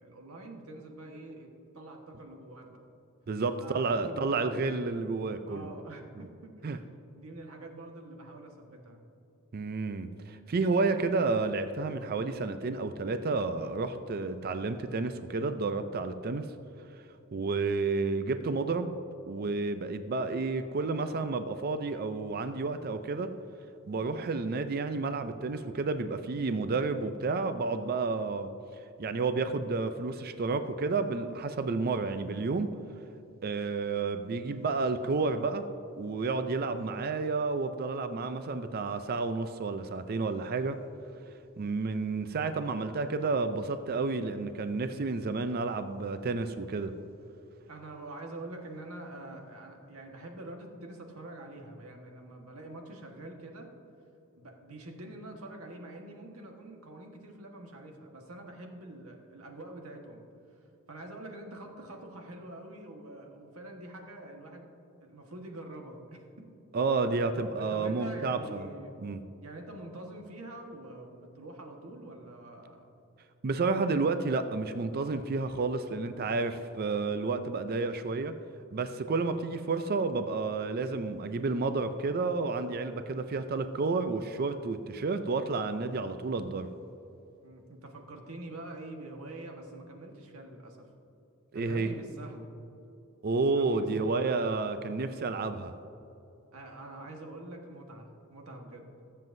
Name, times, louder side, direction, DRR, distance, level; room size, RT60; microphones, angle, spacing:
voice 1, 0.0-2.8 3.6-4.7 5.5-6.8 7.2-9.0 47.7-53.7 54.4-64.7 65.0-66.5 67.4-69.0 69.4-72.9 87.4-90.9 91.5-92.6 93.5-94.3 96.5-98.9, right 1 dB, 80° right, 2 dB, 1.4 m, -45 dB
voice 2, 3.3-5.7 6.6-6.8 9.5-16.5 17.3-18.9 19.3-23.3 23.9-28.5 29.0-32.7 33.4-35.6 36.0-40.8 41.6-46.9 66.7-68.7 69.0-69.2 73.4-78.3 78.7-86.7 91.5-91.9 93.2-95.7, right 3 dB, 45° right, 9 dB, 0.4 m, -31 dB
21.5 x 7.6 x 2.7 m, 2.9 s
head